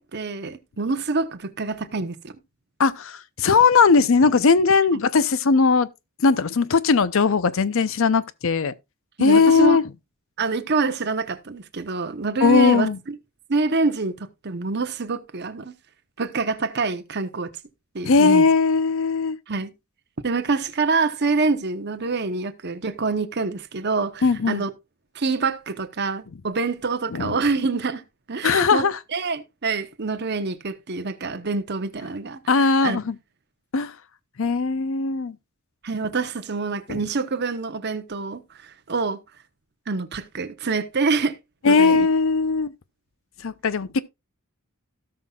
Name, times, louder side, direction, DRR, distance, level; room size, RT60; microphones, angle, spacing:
voice 1, 0.0-2.3 4.9-5.0 9.2-9.8 10.4-12.9 13.5-15.7 16.2-17.5 17.9-18.4 19.5-19.7 20.2-24.7 25.1-28.0 28.3-33.0 35.8-39.2 39.9-41.4 41.6-42.1, right 4 dB, 50° right, 0.8 m, -26 dB
voice 2, 2.8-5.9 6.2-8.7 9.2-9.8 12.4-13.0 18.0-19.4 24.2-24.6 27.1-27.4 28.4-29.0 32.5-33.2 33.7-33.9 34.4-35.4 36.9-37.0 41.6-42.7 43.4-44.0, left 4 dB, 60° left, 0.6 m, -19 dB
17.0 x 5.7 x 2.3 m
head